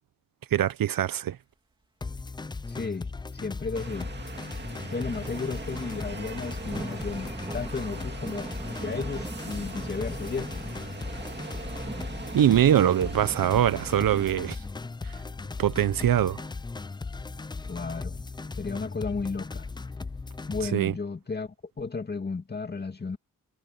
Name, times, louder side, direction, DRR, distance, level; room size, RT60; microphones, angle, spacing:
voice 1, 0.5-1.4 12.3-14.6 15.6-16.4 20.7-20.9, right 11 dB, 80° right, 0.9 m, -23 dB
sound 1, 2.0-20.7, left 3 dB, 15° left, 0.3 m, -37 dB
voice 2, 2.7-4.1 4.9-10.6 17.7-18.2 18.6-19.7 20.5-23.2, left 4 dB, 30° left, 2.3 m, -34 dB
sound 2, 3.7-14.3, right 4 dB, 30° right, 2.0 m, -42 dB
sound 3, 4.4-20.2, right 2 dB, 15° right, 2.8 m, -44 dB
wide cardioid pair, 135°, 33 cm